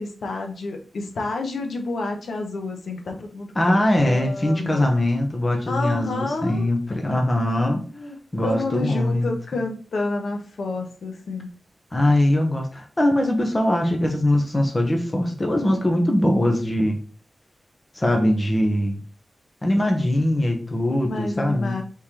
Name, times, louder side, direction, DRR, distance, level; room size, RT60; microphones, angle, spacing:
voice 1, 0.0-4.9 5.7-7.0 7.9-8.2 8.4-11.5 21.0-21.8, left 3 dB, 85° left, 3 dB, 0.8 m, -29 dB
voice 2, 3.6-7.8 8.3-9.3 11.9-17.0 18.0-19.0 19.6-21.8, left 1 dB, 20° left, 2 dB, 0.8 m, -21 dB
3.7 x 3.3 x 4.2 m, 0.39 s
wide cardioid pair, 170°, 0 cm